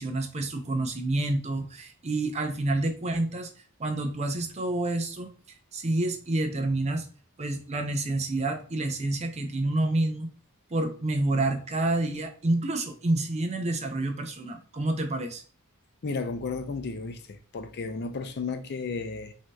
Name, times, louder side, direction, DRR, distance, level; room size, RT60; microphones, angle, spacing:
voice 1, 0.0-3.5 3.8-5.3 5.7-7.1 7.4-10.3 10.7-15.4, right 2 dB, 30° right, 0.5 m, -28 dB
voice 2, 16.0-19.3, left 4 dB, 50° left, 0.4 m, -33 dB
6.1 x 2.7 x 2.2 m
head